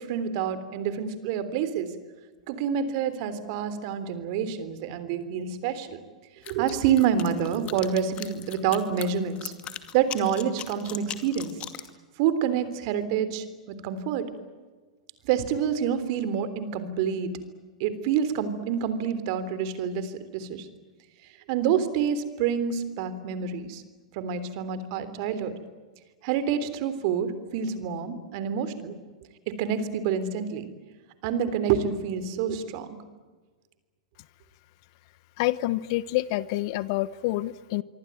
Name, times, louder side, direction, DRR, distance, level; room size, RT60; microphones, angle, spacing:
voice 1, 0.0-1.9 2.5-6.0 6.5-9.5 9.9-11.5 12.2-14.3 15.2-17.3 17.8-20.7 21.5-23.8 24.1-25.5 26.2-29.0 29.5-30.7 31.2-33.0, right 8 dB, 45° right, 13 dB, 3.4 m, -27 dB
sound 1, 6.4-11.9, left 11 dB, 30° left, 2.4 m, -39 dB
voice 2, 35.4-37.8, left 17 dB, 45° left, 18 dB, 1.0 m, -27 dB
26.0 x 24.5 x 9.1 m, 1.4 s
hypercardioid pair, 110°, 4 cm